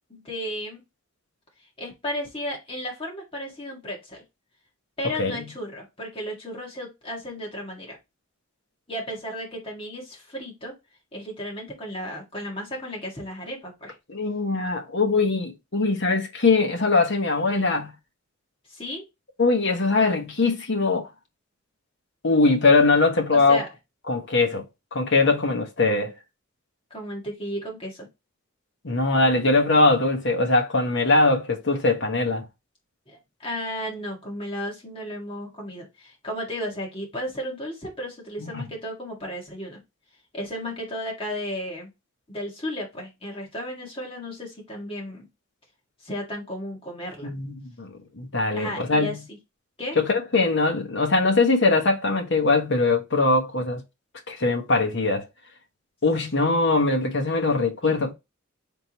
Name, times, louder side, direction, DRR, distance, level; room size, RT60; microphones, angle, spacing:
voice 1, 0.1-0.8 1.8-4.2 5.0-8.0 8.9-10.7 11.1-13.9 17.5-17.7 18.7-19.0 23.3-23.7 26.9-28.1 33.1-39.8 40.3-41.9 42.3-45.3 46.0-47.3 48.5-49.4 49.8-50.0 57.8-57.9, equal, 25° left, 1.8 m, -34 dB
voice 2, 14.1-17.9 19.4-21.1 22.2-23.6 24.1-24.6 24.9-26.1 28.8-32.4 38.5-38.7 47.2-49.2 50.0-53.8 54.3-55.3 56.0-58.1, left 3 dB, 60° left, 1.1 m, -21 dB
4.5 x 3.7 x 2.9 m
head